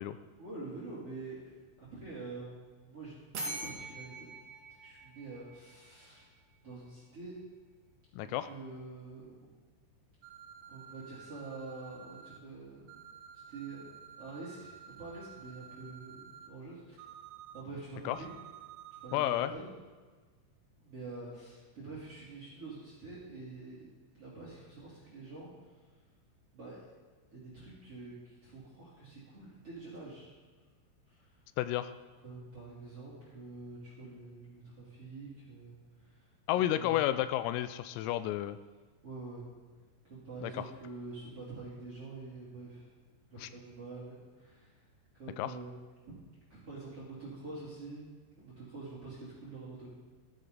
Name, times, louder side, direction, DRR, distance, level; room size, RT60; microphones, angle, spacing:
voice 1, 0.3-1.5 1.9-4.3 4.8-6.3 6.6-7.3 8.2-9.3 10.7-12.9 13.5-13.9 14.2-16.9 17.5-18.3 19.0-19.7 20.8-23.8 24.1-25.5 26.5-26.9 27.3-30.3 31.1-31.3 32.2-36.3 36.7-37.1 39.0-39.4 40.1-42.9 43.3-44.8 45.1-45.7 46.5-48.1 48.4-49.9, right 3 dB, 35° right, -7 dB, 3.3 m, -46 dB
sound 1, 3.3-6.1, right 2 dB, 65° right, 1.6 m, -43 dB
voice 2, 8.1-8.5 18.1-18.2 19.1-19.5 31.6-31.9 36.5-38.6 40.4-40.5 43.4-43.5 45.4-45.5, left 13 dB, 85° left, 12 dB, 3.3 m, -31 dB
sound 2, 10.2-12.4 12.9-16.5 17.0-17.6 18.1-19.5, right 9 dB, 85° right, 3.6 m, -51 dB
14.5 x 14.0 x 4.0 m, 1.4 s
omnidirectional pair, 6.0 m